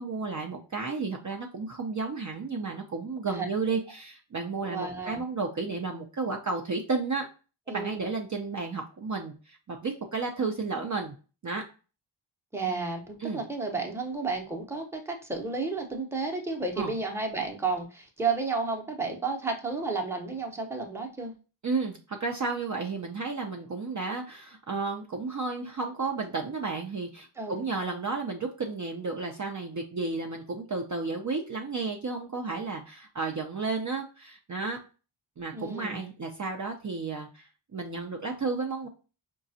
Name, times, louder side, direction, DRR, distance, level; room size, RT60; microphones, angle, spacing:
voice 1, 0.0-7.3 7.7-11.1 11.4-11.6 12.6-12.9 13.2-13.4 16.8-16.9 21.6-34.8 35.4-38.9, right 4 dB, 40° right, 2 dB, 0.5 m, -32 dB
voice 2, 4.6-5.2 7.7-8.1 12.5-21.3 27.4-27.6 35.5-36.0, right 4 dB, 5° right, 2 dB, 0.7 m, -32 dB
4.8 x 2.3 x 2.7 m, 0.35 s
wide cardioid pair, 70°, 50 cm